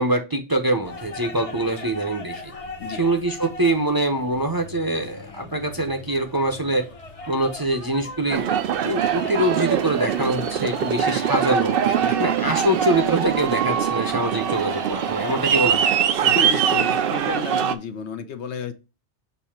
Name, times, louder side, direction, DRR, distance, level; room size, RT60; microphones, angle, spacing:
voice 1, 0.0-2.5 3.0-6.8 7.3-8.5 8.8-11.8 12.2-16.0, right 1 dB, 25° right, 5 dB, 0.7 m, -24 dB
sound 1, 0.8-17.4, left 3 dB, 35° left, 0.9 m, -40 dB
Aircraft, 8.3-17.7, right 8 dB, 60° right, 0.7 m, -22 dB
voice 2, 11.8-12.5 16.2-18.7, left 6 dB, 70° left, 9 dB, 1.0 m, -33 dB
6.8 x 2.7 x 5.7 m, 0.29 s
omnidirectional pair, 1.2 m